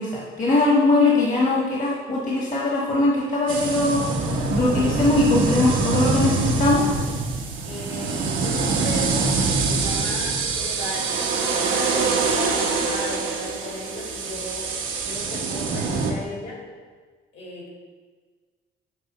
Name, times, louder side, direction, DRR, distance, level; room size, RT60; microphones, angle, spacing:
voice 1, 0.0-4.1 4.5-6.9, left 2 dB, 40° left, -4 dB, 1.3 m, -21 dB
sound 1, 3.5-16.1, right 4 dB, 85° right, 0.9 m, -24 dB
voice 2, 7.7-9.4 9.6-14.7 15.1-16.6 17.3-17.7, left 2 dB, 65° left, -2 dB, 2.1 m, -35 dB
7.9 x 3.0 x 5.6 m, 1.5 s
cardioid pair, 90°, 20 cm